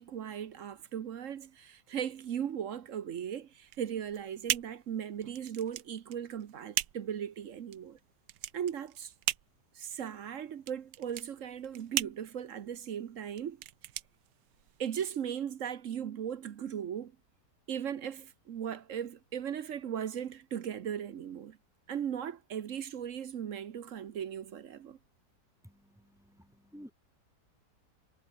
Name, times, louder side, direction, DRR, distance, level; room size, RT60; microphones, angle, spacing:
voice 1, 0.0-8.0 8.5-9.1 9.7-13.6 14.8-17.1 17.7-21.6 21.9-25.0, right 9 dB, 55° right, 1.0 m, -38 dB
sound 1, 3.6-14.9, right 14 dB, 75° right, 1.3 m, -38 dB
voice 2, 25.6-26.9, equal, ahead, 4.7 m, -53 dB
omnidirectional pair, 1.9 m